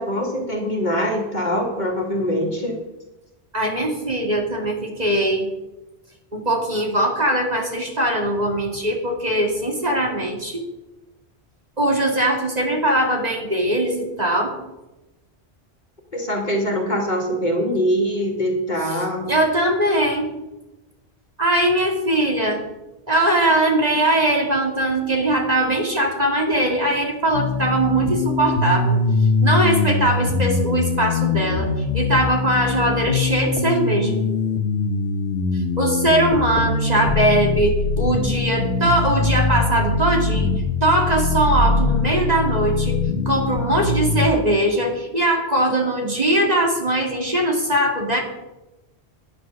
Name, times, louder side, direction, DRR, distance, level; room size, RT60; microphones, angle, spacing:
voice 1, 0.0-2.8 16.1-19.3, equal, 45° left, 0 dB, 2.4 m, -23 dB
voice 2, 3.5-5.5 6.3-10.6 11.8-14.5 18.9-19.0 19.3-20.3 21.4-22.6 23.1-29.0 29.4-31.7 31.9-34.2 35.8-43.0 43.3-48.2, right 1 dB, 40° right, 0 dB, 2.4 m, -21 dB
sound 1, 27.3-44.3, left 3 dB, 80° left, 1.3 m, -22 dB
10.5 x 9.5 x 6.5 m, 1.0 s
omnidirectional pair, 1.1 m